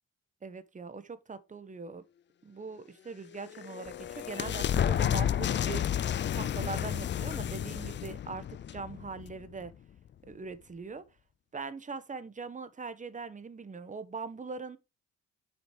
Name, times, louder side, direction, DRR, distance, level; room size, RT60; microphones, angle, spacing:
voice 1, 0.4-2.0 2.4-5.8 6.3-8.4 8.7-9.7 10.3-11.0 11.5-14.8, right 4 dB, 25° right, 1.2 m, -41 dB
sound 1, 3.2-9.7, left 10 dB, 40° left, 0.4 m, -31 dB
7.6 x 5.1 x 4.8 m
cardioid pair, 90°, 30 cm